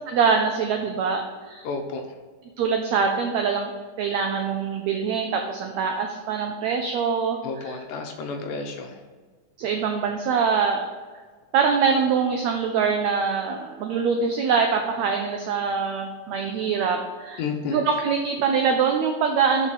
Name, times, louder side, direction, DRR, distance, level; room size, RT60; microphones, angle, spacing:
voice 1, 0.1-1.7 2.6-3.7 4.0-7.7 9.6-10.9 11.5-17.4 17.7-19.7, right 6 dB, 85° right, 4 dB, 1.6 m, -24 dB
voice 2, 1.6-2.0 7.4-9.0 17.4-17.8, left 4 dB, 75° left, 4 dB, 2.2 m, -31 dB
5.7 x 5.2 x 6.3 m, 1.5 s
omnidirectional pair, 3.9 m